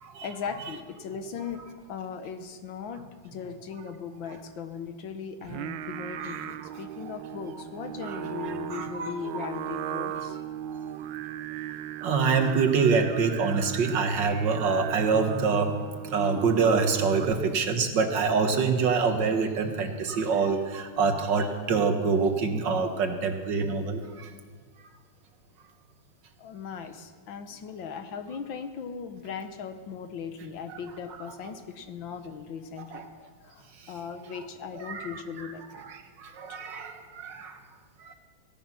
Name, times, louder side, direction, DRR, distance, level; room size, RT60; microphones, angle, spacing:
voice 1, 0.2-10.4 19.2-19.4 26.4-33.0 33.4-35.6, left 6 dB, 80° left, 9 dB, 1.8 m, -38 dB
Singing, 5.4-17.6, right 10 dB, 85° right, 1.4 m, -37 dB
voice 2, 6.1-6.5 8.0-9.1 9.4-9.5 10.9-11.0 12.0-24.3 30.7-30.8 32.9-33.0 34.7-35.2 35.7-37.6 38.0-38.1, right 5 dB, 65° right, 6 dB, 2.0 m, -26 dB
17.0 x 13.5 x 6.0 m, 1.5 s
omnidirectional pair, 2.1 m